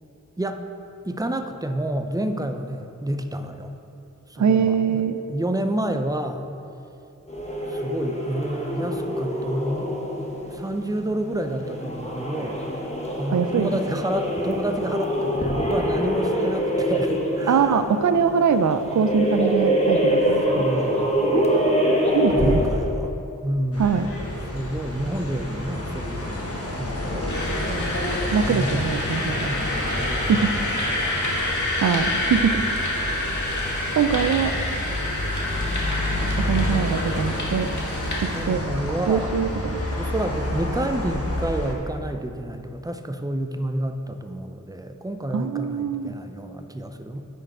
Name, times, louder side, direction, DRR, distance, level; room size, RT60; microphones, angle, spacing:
voice 1, 1.0-3.7 4.3-6.5 7.7-9.9 10.5-12.7 13.2-17.8 20.5-21.3 22.3-23.1 23.4-24.0 24.5-27.9 28.5-31.5 31.9-32.1 34.2-34.5 35.6-36.1 38.3-39.3 40.0-47.3, right 1 dB, 10° right, 7 dB, 0.5 m, -29 dB
voice 2, 4.4-5.2 13.3-13.7 17.5-20.4 21.3-21.8 22.1-22.6 23.8-24.1 28.3-29.5 30.3-30.5 31.8-32.6 34.0-34.5 36.4-37.7 38.5-38.6 39.1-39.8 45.3-46.1, right 6 dB, 60° right, 9 dB, 0.5 m, -22 dB
sound 1, 7.3-23.0, equal, 20° left, 1.1 m, -25 dB
sound 2, 23.7-41.7, left 1 dB, 45° left, 1.2 m, -29 dB
sound 3, 27.3-38.4, left 1 dB, 60° left, 1.6 m, -28 dB
8.8 x 4.6 x 4.8 m, 2.7 s
wide cardioid pair, 45°, 33 cm